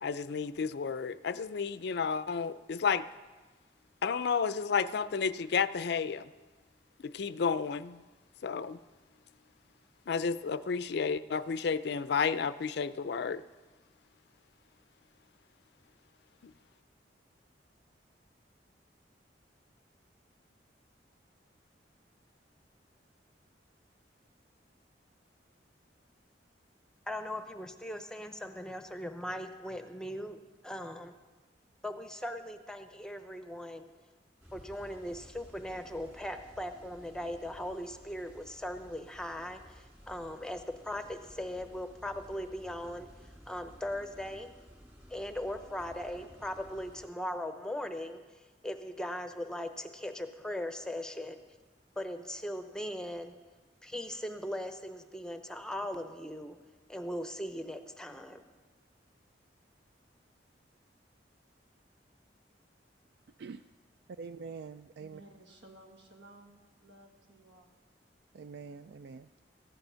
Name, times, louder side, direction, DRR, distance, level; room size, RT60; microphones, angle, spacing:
voice 1, 0.0-3.0 4.0-6.3 7.0-8.0 8.4-8.8 10.1-13.4, left 6 dB, 65° left, 0.4 m, -31 dB
voice 2, 27.1-31.2 31.8-33.9 34.5-43.1 43.5-44.5 45.1-51.4 52.0-53.3 53.8-56.6 56.9-58.4, left 1 dB, 5° left, 0.7 m, -39 dB
sound 1, 34.4-47.1, equal, 10° right, 2.3 m, -55 dB
voice 3, 64.2-65.2 68.3-69.3, right 5 dB, 65° right, 0.3 m, -45 dB
voice 4, 65.0-67.7, right 1 dB, 80° right, 1.7 m, -56 dB
15.0 x 10.5 x 5.6 m
head